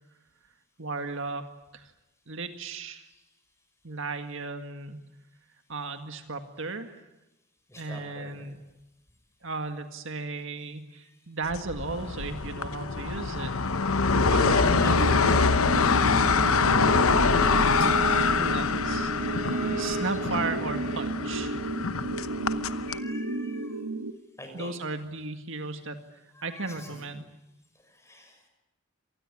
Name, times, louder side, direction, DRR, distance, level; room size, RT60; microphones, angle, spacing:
voice 1, 0.8-1.4 1.7-1.9 2.3-3.1 3.8-5.0 5.7-7.0 7.8-8.6 9.4-13.5 14.3-15.8 16.5-16.9 18.4-19.1 19.8-21.7 24.5-26.0 26.4-27.3, right 3 dB, 60° right, 7 dB, 1.9 m, -35 dB
voice 2, 7.7-8.5 11.0-11.1 14.7-15.0 20.0-20.4 22.8-23.8 24.4-24.9 26.3-27.0 27.9-28.4, left 1 dB, 15° left, 5 dB, 6.1 m, -45 dB
sound 1, 11.5-23.0, left 4 dB, 70° left, 1.0 m, -25 dB
sound 2, 14.1-24.1, right 2 dB, 85° right, 1.8 m, -32 dB
Bowed string instrument, 16.1-21.1, right 5 dB, 35° right, 4.6 m, -36 dB
26.5 x 20.0 x 9.8 m, 0.95 s
head